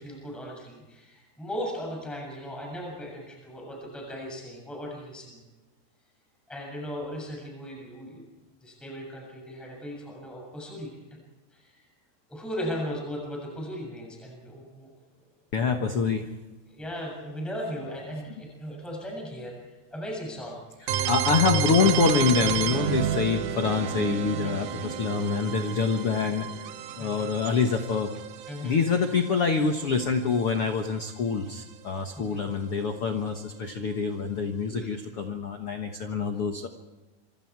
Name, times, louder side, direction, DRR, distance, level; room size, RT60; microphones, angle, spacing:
voice 1, 0.0-5.4 6.5-8.2 8.6-11.2 11.5-11.8 12.3-14.9 16.7-19.6 19.9-20.6 24.4-24.8 27.0-27.3 28.5-28.8 32.1-32.4 34.7-34.9, equal, ahead, -1 dB, 6.8 m, -37 dB
voice 2, 15.5-16.3 21.1-26.7 27.0-28.1 28.6-36.7, left 5 dB, 80° left, 5 dB, 1.2 m, -26 dB
sound 1, 20.9-30.6, right 10 dB, 85° right, 1.7 m, -31 dB
27.0 x 25.5 x 4.7 m, 1.1 s
omnidirectional pair, 4.8 m